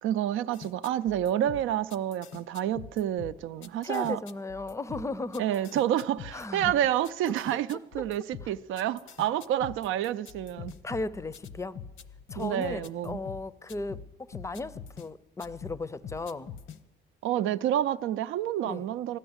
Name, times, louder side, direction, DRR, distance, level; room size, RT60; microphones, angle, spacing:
voice 1, 0.0-4.2 5.4-10.7 12.4-13.2 17.2-19.2, right 11 dB, 85° right, 0.5 m, -29 dB
sound 1, 0.5-15.1 15.4-16.8, left 7 dB, 75° left, 0.9 m, -44 dB
voice 2, 3.8-5.4 6.3-6.7 10.8-11.8 12.3-16.5 18.6-18.8, left 2 dB, 15° left, 0.5 m, -36 dB
14.5 x 11.0 x 7.9 m
cardioid pair, 90°, 20 cm